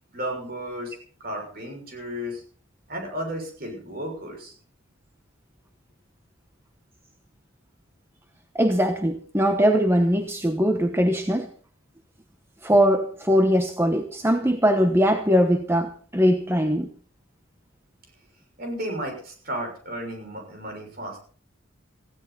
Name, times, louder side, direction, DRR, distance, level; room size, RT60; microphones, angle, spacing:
voice 1, 0.1-2.4 2.9-4.5 18.6-21.2, equal, 45° right, 2 dB, 6.4 m, -33 dB
voice 2, 8.5-11.5 12.6-16.9, equal, 10° right, 6 dB, 1.0 m, -21 dB
18.0 x 16.0 x 4.2 m, 0.44 s
head